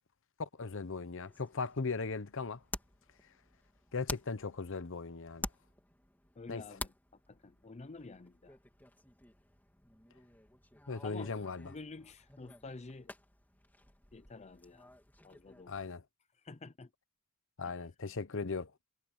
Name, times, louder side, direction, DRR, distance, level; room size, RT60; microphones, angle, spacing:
voice 1, 0.4-2.6 3.9-5.5 6.5-6.6 10.9-11.7 15.7-16.0 17.6-18.7, left 4 dB, 65° left, 0.9 m, -38 dB
sound 1, 1.2-15.9, left 1 dB, 10° left, 3.2 m, -50 dB
voice 2, 6.4-6.9 7.3-8.6 11.0-11.4 11.6-13.1 14.1-14.9 15.2-15.8 16.4-16.9 17.6-17.8, left 3 dB, 30° left, 0.6 m, -49 dB
head